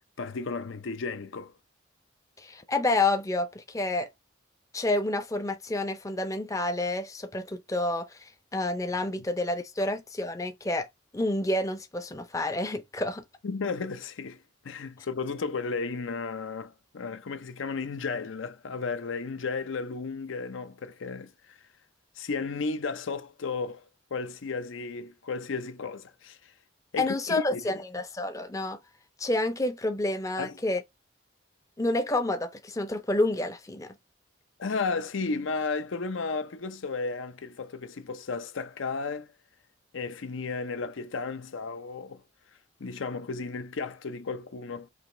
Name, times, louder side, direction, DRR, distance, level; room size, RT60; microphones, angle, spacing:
voice 1, 0.2-1.5 13.4-21.6 22.2-23.9 24.1-26.5 26.9-27.8 30.4-30.6 34.6-39.3 39.9-42.2 42.8-44.9, left 4 dB, 80° left, 0.6 m, -34 dB
voice 2, 2.4-4.1 4.7-8.2 8.5-10.9 11.1-13.2 27.0-28.8 29.2-30.8 31.8-33.9, left 2 dB, 15° left, 0.5 m, -29 dB
4.9 x 2.9 x 2.6 m
head